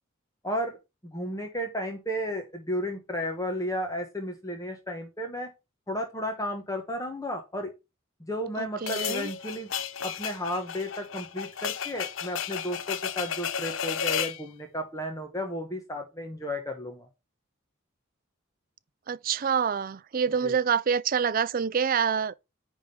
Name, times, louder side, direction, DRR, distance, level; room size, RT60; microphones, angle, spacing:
voice 1, 0.4-0.8 1.0-5.5 5.9-7.7 8.2-9.7 10.0-17.1 20.4-20.5, equal, 15° left, 1.2 m, -33 dB
voice 2, 8.6-9.3 19.1-22.4, right 7 dB, 45° right, 0.4 m, -26 dB
sound 1, 8.9-14.4, left 8 dB, 75° left, 0.6 m, -33 dB
10.0 x 3.6 x 5.3 m
head